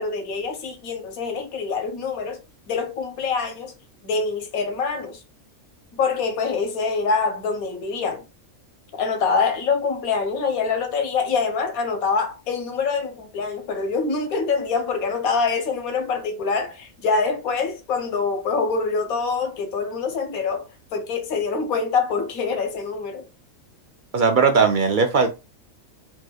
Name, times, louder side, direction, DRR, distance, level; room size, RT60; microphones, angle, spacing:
voice 1, 0.0-2.4 2.7-3.7 4.0-5.2 5.9-8.2 8.9-23.2, left 4 dB, 90° left, 1.4 m, -25 dB
voice 2, 24.1-25.3, right 5 dB, 70° right, 0.4 m, -18 dB
4.5 x 3.0 x 2.2 m
omnidirectional pair, 1.4 m